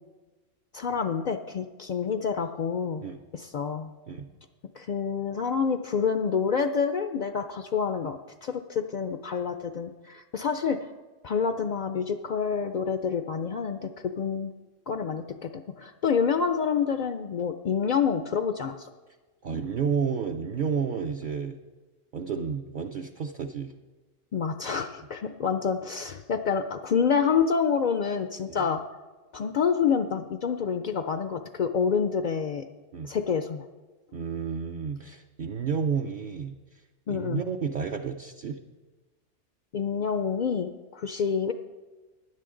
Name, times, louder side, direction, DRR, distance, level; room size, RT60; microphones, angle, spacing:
voice 1, 0.7-3.0 3.3-3.9 4.8-10.9 11.2-14.5 14.9-18.9 24.3-28.8 29.3-32.6 33.0-33.6 37.1-37.4 39.7-41.5, left 6 dB, 75° left, 8 dB, 0.4 m, -28 dB
voice 2, 19.4-21.6 22.1-23.7 28.5-28.7 32.9-33.1 34.1-36.8 37.1-38.6, right 6 dB, 55° right, 4 dB, 0.5 m, -31 dB
16.0 x 10.0 x 3.8 m, 1.2 s
omnidirectional pair, 1.4 m